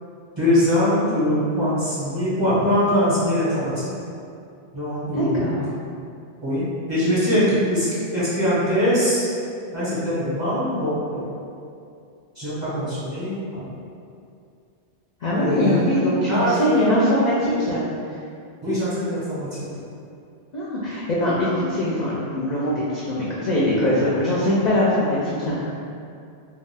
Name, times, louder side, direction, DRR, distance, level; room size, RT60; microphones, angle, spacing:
voice 1, 0.4-3.9 4.7-5.4 6.4-9.3 9.7-11.3 12.4-13.7 15.3-15.8 16.3-16.9 18.6-19.5, equal, 25° right, -11 dB, 0.8 m, -22 dB
voice 2, 5.0-5.7 15.2-17.9 20.5-25.6, left 1 dB, 60° left, -7 dB, 0.4 m, -22 dB
2.4 x 2.3 x 3.3 m, 2.4 s
omnidirectional pair, 1.1 m